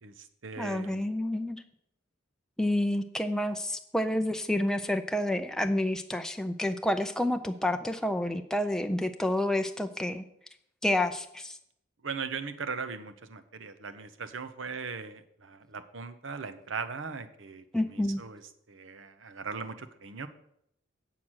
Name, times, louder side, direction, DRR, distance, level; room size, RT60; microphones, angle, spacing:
voice 1, 0.0-1.0 12.0-18.4 18.7-20.3, right 5 dB, 70° right, 10 dB, 0.8 m, -39 dB
voice 2, 0.6-1.6 2.6-10.2 10.8-11.6 17.7-18.2, left 1 dB, 5° left, 6 dB, 0.4 m, -29 dB
8.8 x 5.9 x 6.3 m, 0.73 s
head